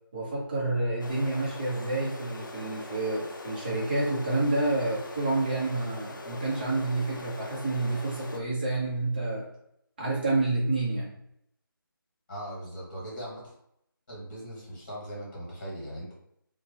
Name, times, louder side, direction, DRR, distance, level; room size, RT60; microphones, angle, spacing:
voice 1, 0.1-9.5 10.0-11.1, right 2 dB, 25° right, -4 dB, 0.8 m, -29 dB
sound 1, 1.0-8.4, left 2 dB, 60° left, 0.4 m, -42 dB
voice 2, 12.3-13.5 14.1-16.1, equal, 30° left, -6 dB, 1.5 m, -39 dB
2.7 x 2.2 x 2.7 m, 0.74 s
figure-of-eight pair, 160°, 12 cm